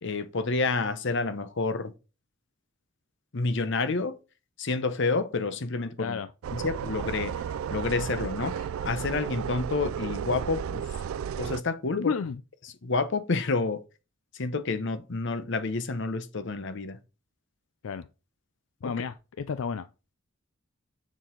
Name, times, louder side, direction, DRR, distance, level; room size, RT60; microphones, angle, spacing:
voice 1, 0.0-1.9 3.3-4.2 4.6-6.2 6.5-7.4 7.7-10.8 11.4-12.1 12.8-13.8 14.4-17.0 18.8-18.9, left 3 dB, 60° left, 0.8 m, -29 dB
voice 2, 6.0-6.3 11.9-12.4 17.8-18.1 18.8-19.9, left 6 dB, 80° left, 0.4 m, -31 dB
sound 1, 6.4-11.6, right 8 dB, 80° right, 0.3 m, -33 dB
7.1 x 6.2 x 3.8 m
head